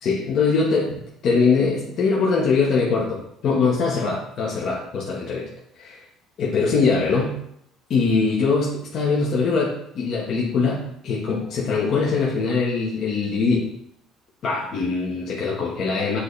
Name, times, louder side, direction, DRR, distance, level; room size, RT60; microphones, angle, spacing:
voice 1, 0.0-5.5 5.7-6.0 6.4-7.3 7.9-13.7 14.4-16.2, left 4 dB, 55° left, -4 dB, 1.2 m, -22 dB
7.8 x 3.3 x 4.0 m, 0.75 s
cardioid pair, 105°, 0 cm